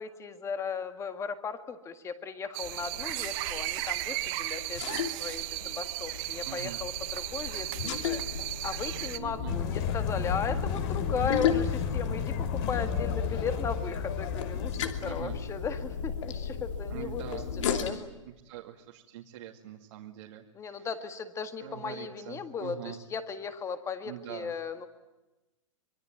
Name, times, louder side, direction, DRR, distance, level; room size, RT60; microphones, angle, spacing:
voice 1, 0.0-8.2 8.6-18.1 20.5-24.9, left 6 dB, 15° left, 9 dB, 1.9 m, -37 dB
sound 1, 2.5-9.2, right 20 dB, 40° right, 1.1 m, -35 dB
sound 2, 2.6-17.9, left 7 dB, 65° left, 2.9 m, -35 dB
voice 2, 6.5-6.8 9.2-9.6 15.0-15.4 16.9-17.9 18.4-20.9 21.6-23.0 24.1-24.5, right 11 dB, 60° right, 0 dB, 2.4 m, -43 dB
sound 3, 9.5-15.1, left 7 dB, 50° left, 3.0 m, -32 dB
25.5 x 22.0 x 9.2 m, 1.1 s
hypercardioid pair, 140°, 17 cm